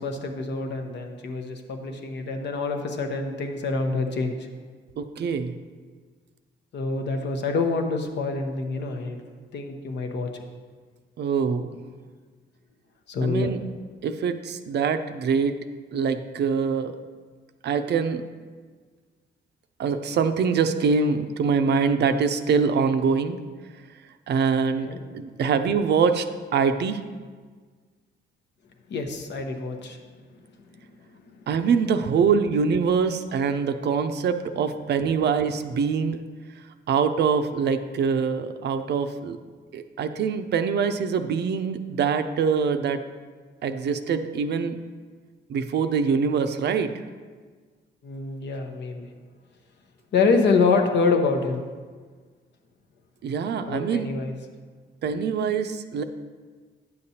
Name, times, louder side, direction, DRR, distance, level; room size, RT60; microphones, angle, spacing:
voice 1, 0.0-4.5 6.7-9.2 9.5-10.3 13.1-13.5 24.8-25.0 28.9-30.0 48.0-49.1 50.1-51.6 53.6-54.3, left 4 dB, 60° left, 4 dB, 0.9 m, -26 dB
voice 2, 5.0-5.6 11.2-11.8 13.2-13.6 14.0-15.6 15.9-17.0 17.6-18.2 19.8-23.4 24.3-26.3 26.5-27.0 31.5-36.2 36.9-39.4 39.7-43.0 43.6-44.8 45.5-46.9 53.2-54.1 55.0-56.0, right 6 dB, 60° right, 9 dB, 0.5 m, -24 dB
9.3 x 6.7 x 2.8 m, 1.5 s
cardioid pair, 90°, 20 cm